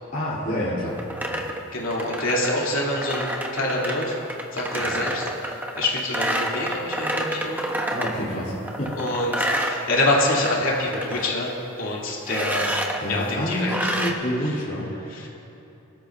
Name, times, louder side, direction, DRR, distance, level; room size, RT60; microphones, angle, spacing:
voice 1, 0.1-1.0 1.3-1.4 4.7-5.0 7.9-8.5 8.8-9.0 13.0-14.9, equal, 40° left, -10 dB, 3.0 m, -28 dB
sound 1, 0.9-8.2 8.6-10.5 10.8-11.3 12.3-13.0 13.7-14.1, right 1 dB, 10° right, 0.8 m, -28 dB
voice 2, 1.7-4.2 4.5-7.6 8.9-11.5 11.8-12.7 13.1-14.0 14.4-14.6 15.1-15.3, left 1 dB, 70° left, -4 dB, 2.8 m, -26 dB
23.5 x 13.0 x 2.5 m, 2.9 s
head